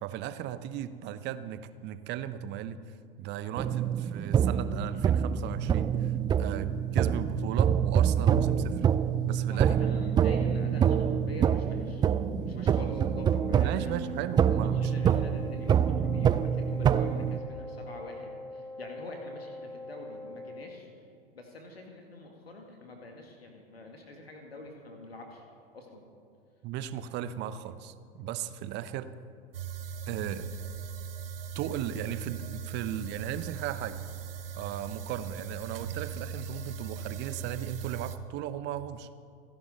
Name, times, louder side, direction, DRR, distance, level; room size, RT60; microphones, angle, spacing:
voice 1, 0.0-2.8 3.2-6.1 6.4-8.8 9.3-9.7 13.6-14.9 26.6-29.1 30.1-30.5 31.5-34.0 34.6-39.1, right 10 dB, 35° right, 12 dB, 0.9 m, -36 dB
sound 1, 3.6-17.4, right 8 dB, 15° right, 0.4 m, -26 dB
voice 2, 9.5-12.1 12.3-13.9 14.5-21.1 21.3-25.5 25.7-26.1, left 2 dB, 80° left, 2 dB, 2.1 m, -46 dB
Wind instrument woodwind instrument, 12.6-20.8, left 2 dB, 15° left, 2.4 m, -44 dB
sound 2, 29.5-38.2, right 7 dB, 70° right, 1.0 m, -39 dB
28.5 x 11.0 x 4.0 m, 2.5 s
figure-of-eight pair, 90°, 30 cm